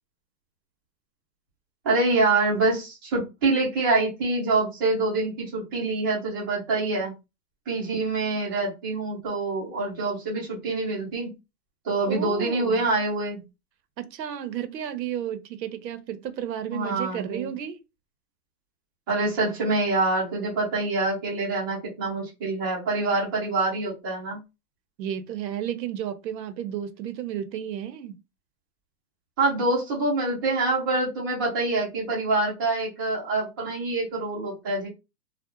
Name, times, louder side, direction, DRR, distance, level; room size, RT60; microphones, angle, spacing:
voice 1, 1.8-7.1 7.7-11.3 11.8-13.4 16.7-17.5 19.1-24.4 29.4-34.9, right 2 dB, 15° right, 0.5 m, -25 dB
voice 2, 12.1-12.9 14.0-17.8 25.0-28.2, right 9 dB, 80° right, 0.8 m, -32 dB
2.4 x 2.1 x 2.9 m
hypercardioid pair, 160°, 50 cm